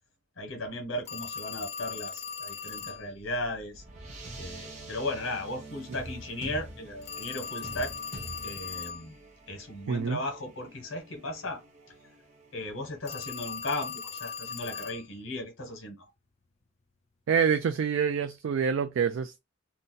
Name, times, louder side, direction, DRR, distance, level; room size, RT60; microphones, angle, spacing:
voice 1, 0.4-3.8 4.4-7.9 8.4-9.2 9.5-11.6 12.5-16.1, left 1 dB, 85° left, 1.1 m, -36 dB
Telephone, 1.1-3.0 7.0-9.1 13.0-15.0, left 6 dB, 35° left, 0.4 m, -39 dB
sound 1, 3.0-13.6, right 2 dB, 35° right, 0.7 m, -46 dB
voice 2, 9.9-10.2 17.3-19.4, right 6 dB, 75° right, 0.3 m, -26 dB
2.7 x 2.1 x 3.8 m
head